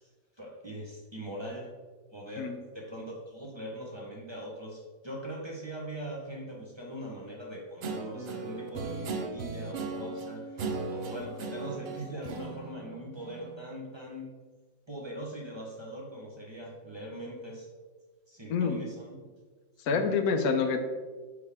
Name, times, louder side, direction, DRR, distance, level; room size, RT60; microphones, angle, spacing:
voice 1, 0.4-1.7 2.1-14.3 14.9-17.7 18.3-19.2 19.9-20.0, right 1 dB, 20° right, -3 dB, 0.8 m, -41 dB
Guitar, 7.8-13.6, right 3 dB, 75° right, 0.5 m, -37 dB
voice 2, 18.5-18.8 19.9-20.8, left 5 dB, 70° left, 6 dB, 1.1 m, -27 dB
6.4 x 4.9 x 3.5 m, 1.4 s
omnidirectional pair, 1.8 m